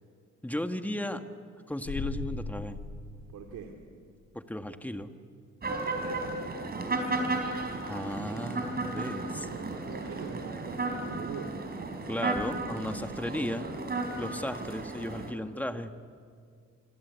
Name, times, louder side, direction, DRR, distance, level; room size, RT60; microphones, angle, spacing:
voice 1, 0.4-1.2 1.7-2.8 4.3-5.1 7.9-9.5 12.1-13.7 14.2-15.9, left 1 dB, 5° left, 7 dB, 1.8 m, -35 dB
sound 1, 1.8-4.1, left 4 dB, 75° left, 2.3 m, -38 dB
voice 2, 3.3-3.7 9.9-11.5, right 7 dB, 85° right, 2 dB, 2.7 m, -42 dB
sound 2, 5.6-15.3, right 2 dB, 30° right, 4.5 m, -34 dB
26.0 x 26.0 x 8.4 m, 2.2 s
cardioid pair, 90°, 30 cm